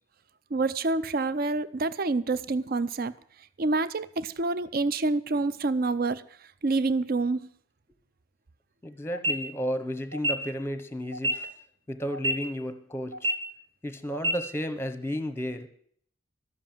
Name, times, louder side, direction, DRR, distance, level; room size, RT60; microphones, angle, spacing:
voice 1, 0.5-3.1 3.6-6.2 6.6-7.5, right 3 dB, 45° right, 16 dB, 0.5 m, -27 dB
voice 2, 8.8-11.5 11.9-13.3 13.8-15.7, equal, 10° left, 11 dB, 0.9 m, -33 dB
sound 1, 9.1-9.3 10.1-10.3 11.1-11.3 12.1-12.3 13.1-13.3 14.1-14.3, equal, 60° right, 1.9 m, -26 dB
12.5 x 7.5 x 9.0 m, 0.62 s
head